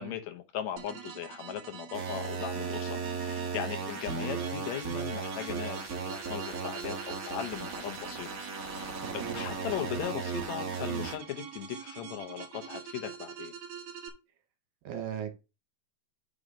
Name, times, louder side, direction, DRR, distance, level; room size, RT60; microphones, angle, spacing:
voice 1, 0.0-8.3 8.6-13.5, left 10 dB, 75° left, 1.6 m, -38 dB
sound 1, 0.8-14.1, right 7 dB, 60° right, 1.9 m, -44 dB
sound 2, 1.9-11.1, right 5 dB, 30° right, 1.9 m, -36 dB
voice 2, 9.0-9.4 14.8-15.4, right 9 dB, 75° right, 2.9 m, -38 dB
6.4 x 4.9 x 5.2 m
omnidirectional pair, 4.1 m